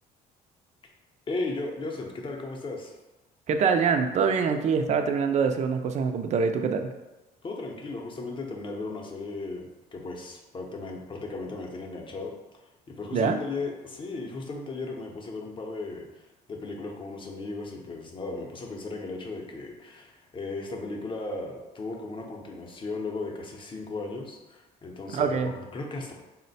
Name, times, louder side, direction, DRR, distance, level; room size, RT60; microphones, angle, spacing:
voice 1, 1.3-2.9 7.4-12.3 13.0-16.1 16.5-26.1, left 3 dB, 30° left, 1 dB, 0.7 m, -36 dB
voice 2, 3.5-6.9 13.1-13.4 25.1-25.5, right 5 dB, 45° right, 6 dB, 0.4 m, -24 dB
4.1 x 2.1 x 4.0 m, 1.0 s
cardioid pair, 110°, 17 cm